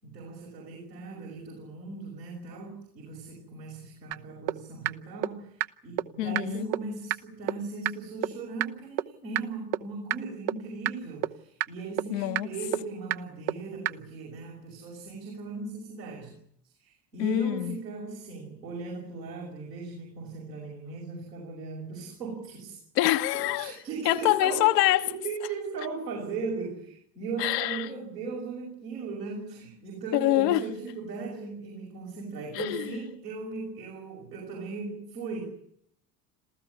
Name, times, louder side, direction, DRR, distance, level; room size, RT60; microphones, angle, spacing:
voice 1, 0.0-16.3 16.6-22.8 23.3-24.7 25.0-35.4, right 4 dB, 80° right, 6.1 m, -38 dB
sound 1, 4.1-4.2 4.5-4.6 4.8-4.9 5.2-5.3 5.6-5.7 6.0-6.1 6.3-6.4 6.7-6.8 7.1-7.2 7.5-7.6 7.8-7.9 8.2-8.3 8.6-8.7 9.0-9.1 9.3-9.4 9.7-9.8 10.1-10.2 10.5-10.6 10.8-10.9 11.2-11.3 11.6-11.7 12.0-12.1 12.3-12.4 12.7-12.8 13.1-13.2 13.5-13.6 13.8-13.9, right 14 dB, 55° right, 1.0 m, -26 dB
voice 2, 6.2-6.7 12.1-12.5 17.2-17.8 22.9-23.7 24.0-25.1 27.4-27.9 30.1-30.6 32.5-32.9, left 15 dB, 75° left, 1.2 m, -25 dB
27.0 x 15.0 x 9.8 m
figure-of-eight pair, 60°, 50 cm